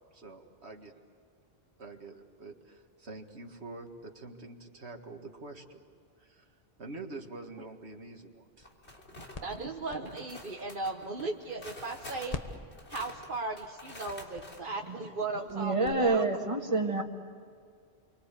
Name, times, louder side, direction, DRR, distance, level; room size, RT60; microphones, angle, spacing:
voice 1, 0.1-1.0 1.8-5.8 6.2-6.5 6.8-8.7, right 2 dB, 80° right, 3 dB, 2.1 m, -46 dB
sound 1, 8.3-12.0 12.3-15.9, left 3 dB, 35° left, 1.4 m, -47 dB
sound 2, 8.6-9.7 10.1-14.6, left 2 dB, 90° left, 3.5 m, -48 dB
voice 2, 9.4-12.4 12.9-15.7 16.0-16.2, right 3 dB, 50° right, 0 dB, 1.4 m, -36 dB
voice 3, 15.5-17.0, right 3 dB, 30° right, 2 dB, 1.9 m, -28 dB
29.0 x 24.5 x 8.4 m, 2.1 s
omnidirectional pair, 1.1 m